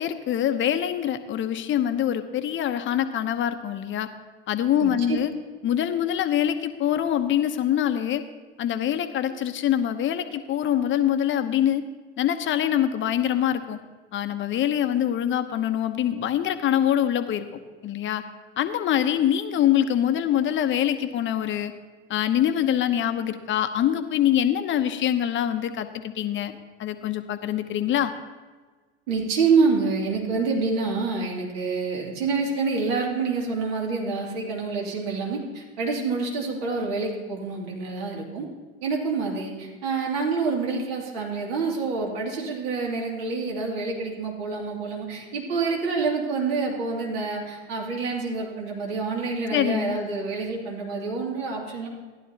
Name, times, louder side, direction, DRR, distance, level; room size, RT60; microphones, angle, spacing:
voice 1, 0.0-4.1 4.5-5.3 5.6-8.2 8.6-11.8 12.2-13.8 14.1-17.5 17.8-18.2 18.6-21.7 22.1-26.5 26.8-28.1 49.5-50.0, left 10 dB, 35° left, 9 dB, 0.9 m, -24 dB
voice 2, 4.8-5.2 29.1-38.5 38.8-51.9, right 4 dB, 65° right, -1 dB, 2.7 m, -27 dB
14.0 x 11.0 x 2.9 m, 1.4 s
hypercardioid pair, 80°, 33 cm